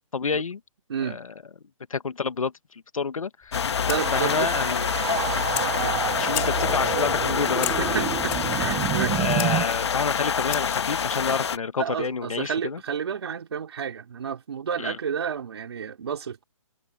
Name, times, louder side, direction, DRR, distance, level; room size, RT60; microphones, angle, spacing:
voice 1, 0.1-0.6 1.0-1.3 1.9-3.8 4.1-4.9 6.0-8.1 9.1-12.8 14.8-15.0, left 5 dB, 75° left, 1.7 m, -29 dB
Fire, 3.4-10.9, left 22 dB, 15° left, 3.4 m, -39 dB
sound 1, 3.5-11.6, left 7 dB, 50° left, 1.7 m, -26 dB
voice 2, 3.9-4.5 5.8-6.0 7.3-7.4 7.8-9.2 11.8-16.4, right 7 dB, 50° right, 4.2 m, -31 dB
sound 2, 4.0-9.6, right 20 dB, 15° right, 1.0 m, -30 dB
hypercardioid pair, 165°, 17 cm